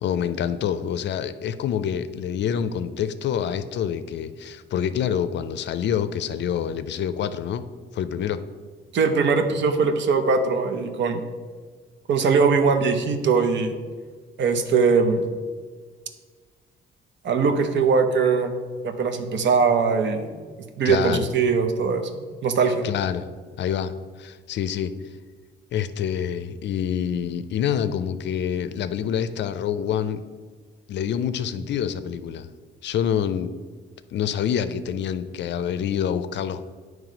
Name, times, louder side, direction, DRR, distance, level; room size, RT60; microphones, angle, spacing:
voice 1, 0.0-7.6 7.9-8.4 20.8-21.3 22.8-23.3 23.6-24.9 25.7-30.2 30.9-32.5 32.8-33.5 34.1-36.6, left 8 dB, 65° left, 12 dB, 0.5 m, -26 dB
voice 2, 8.9-11.2 12.1-13.8 14.4-15.3 17.2-20.3 20.8-22.9, right 5 dB, 65° right, 7 dB, 0.8 m, -21 dB
9.1 x 3.2 x 5.0 m, 1.6 s
cardioid pair, 90°, 20 cm